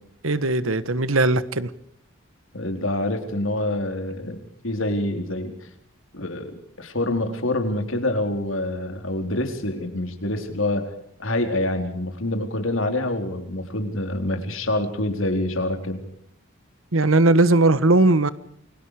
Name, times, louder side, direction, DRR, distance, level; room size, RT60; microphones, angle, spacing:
voice 1, 0.2-1.7 16.9-18.3, right 2 dB, 80° right, 15 dB, 1.4 m, -18 dB
voice 2, 2.5-4.4 4.6-5.6 6.1-10.9 11.2-16.1, left 1 dB, 75° left, 6 dB, 3.9 m, -26 dB
29.0 x 23.0 x 4.9 m, 0.68 s
head